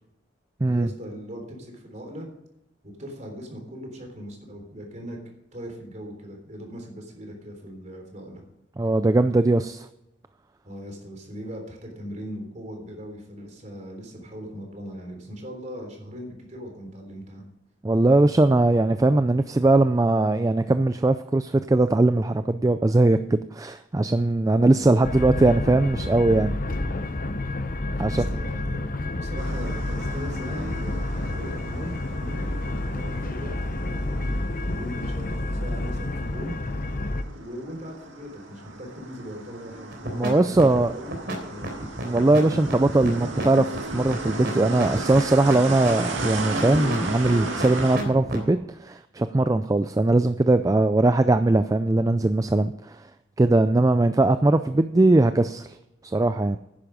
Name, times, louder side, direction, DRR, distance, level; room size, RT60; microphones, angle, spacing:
voice 1, 0.6-2.3 2.8-5.2 5.5-8.4 10.6-17.4 24.6-24.9 28.0-28.8 29.1-36.5 37.4-41.7, equal, 40° right, 2 dB, 3.6 m, -39 dB
voice 2, 8.8-9.9 17.8-26.6 28.0-28.2 40.1-40.9 42.0-53.0 53.4-55.8 56.1-56.6, right 2 dB, 20° right, 11 dB, 0.3 m, -20 dB
sound 1, 25.0-37.2, left 2 dB, 45° left, 0.9 m, -29 dB
sound 2, 29.4-48.0, right 2 dB, 90° right, 2.2 m, -36 dB
sound 3, 39.9-40.3 40.6-48.5, right 1 dB, 60° right, 3.6 m, -31 dB
11.0 x 10.0 x 5.0 m, 0.88 s
head